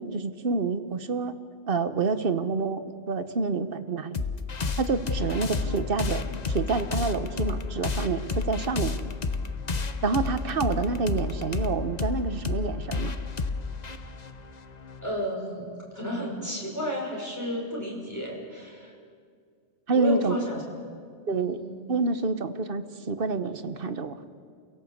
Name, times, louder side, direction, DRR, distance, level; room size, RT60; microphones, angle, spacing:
voice 1, 0.0-1.3 1.7-4.2 4.8-9.0 10.0-13.2 19.9-20.3 21.3-21.6 21.9-24.2, right 4 dB, 50° right, 11 dB, 1.2 m, -28 dB
sound 1, 4.1-15.2, left 4 dB, 40° left, 1.0 m, -31 dB
voice 2, 15.0-18.9 19.9-20.6 21.3-21.8, equal, 15° left, -2 dB, 5.6 m, -32 dB
29.0 x 17.0 x 8.0 m, 2.2 s
omnidirectional pair, 1.2 m